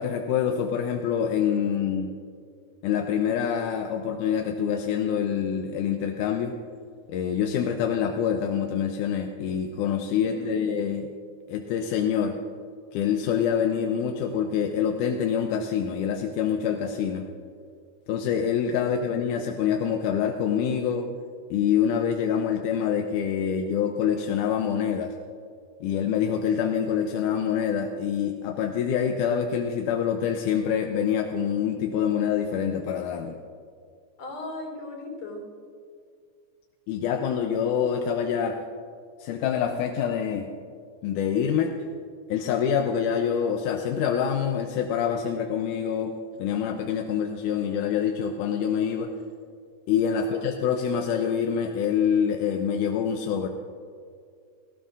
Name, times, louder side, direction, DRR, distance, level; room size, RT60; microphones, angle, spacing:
voice 1, 0.0-2.1 2.8-6.6 7.1-11.1 11.5-12.4 12.9-17.3 18.1-21.1 21.5-25.1 25.8-33.4 36.9-38.6 39.2-40.5 41.0-41.7 42.3-49.1 49.9-53.5, left 8 dB, 85° left, 4 dB, 2.2 m, -26 dB
voice 2, 10.3-10.8 18.8-19.3 34.2-35.4 50.1-50.6, left 2 dB, 60° left, -1 dB, 4.9 m, -38 dB
17.5 x 17.0 x 2.5 m, 2.2 s
omnidirectional pair, 3.5 m